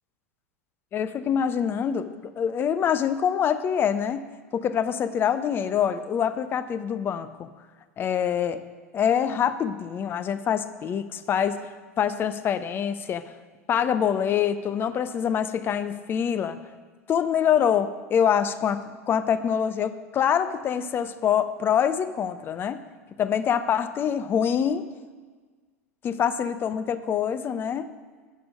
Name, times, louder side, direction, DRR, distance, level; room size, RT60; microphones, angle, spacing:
voice 1, 0.9-4.3 4.5-7.5 8.0-8.6 8.9-13.3 13.7-16.6 17.1-18.8 19.1-22.8 23.2-24.9 26.0-27.9, left 8 dB, 25° left, 12 dB, 0.5 m, -25 dB
8.3 x 5.9 x 6.3 m, 1.5 s
figure-of-eight pair, 90°, 8 cm